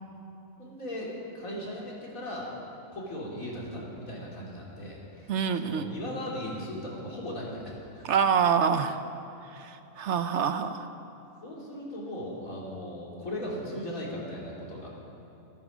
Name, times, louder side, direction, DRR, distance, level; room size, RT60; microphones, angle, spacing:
voice 1, 0.6-2.5 2.9-8.1 11.4-14.9, left 1 dB, 85° left, -4 dB, 3.4 m, -38 dB
voice 2, 5.3-5.9 8.0-9.0 9.5-10.9, right 7 dB, 65° right, 10 dB, 0.9 m, -26 dB
14.0 x 13.5 x 6.1 m, 2.9 s
omnidirectional pair, 1.4 m